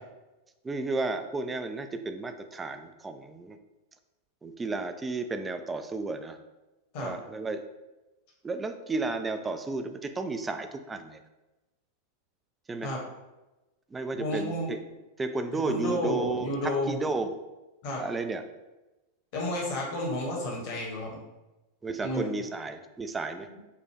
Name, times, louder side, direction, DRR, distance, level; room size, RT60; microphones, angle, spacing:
voice 1, 0.6-3.6 4.4-6.4 7.0-7.6 8.4-11.2 12.7-12.9 13.9-14.8 15.2-17.4 18.0-18.4 19.9-20.0 21.8-23.5, right 3 dB, 15° right, 8 dB, 0.3 m, -33 dB
voice 2, 14.2-14.7 15.6-17.0 17.8-18.0 19.3-21.2 22.0-22.3, left 1 dB, 45° left, -2 dB, 1.0 m, -31 dB
4.6 x 2.2 x 3.3 m, 1.0 s
figure-of-eight pair, 90°, 0 cm